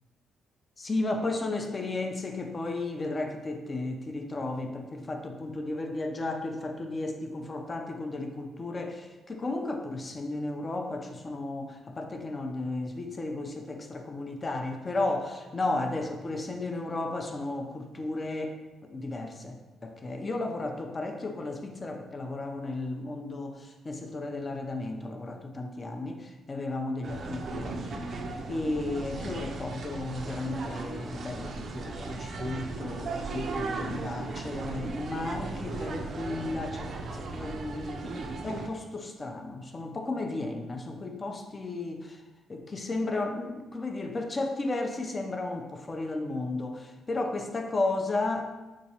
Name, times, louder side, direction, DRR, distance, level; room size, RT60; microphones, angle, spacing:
voice 1, 0.8-18.6 18.8-28.2 28.5-42.2 42.5-48.5, left 2 dB, 30° left, 4 dB, 0.4 m, -34 dB
sound 1, 27.0-38.7, right 3 dB, 55° right, 0.3 m, -36 dB
3.5 x 2.9 x 2.8 m, 1.1 s
cardioid pair, 90°, 0 cm